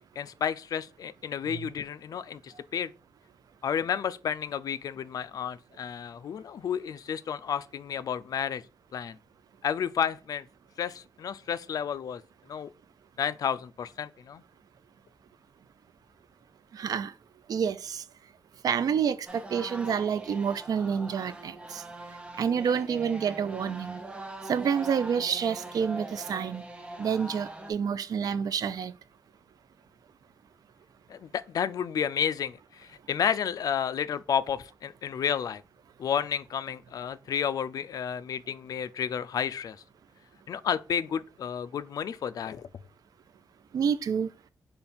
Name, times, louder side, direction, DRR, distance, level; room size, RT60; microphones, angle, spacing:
voice 1, 0.2-2.9 3.6-8.7 8.9-9.2 9.6-10.5 10.8-12.2 12.5-12.7 13.2-14.4 31.1-35.6 36.0-39.8 40.5-42.7, left 8 dB, 65° left, 0.4 m, -31 dB
voice 2, 16.7-17.1 17.5-18.0 18.6-21.8 22.4-24.0 24.5-26.6 27.0-29.0 43.7-44.3, right 7 dB, 70° right, 0.4 m, -28 dB
sound 1, 19.3-27.7, right 1 dB, 15° right, 0.7 m, -42 dB
5.2 x 2.3 x 4.2 m
cardioid pair, 110°, 7 cm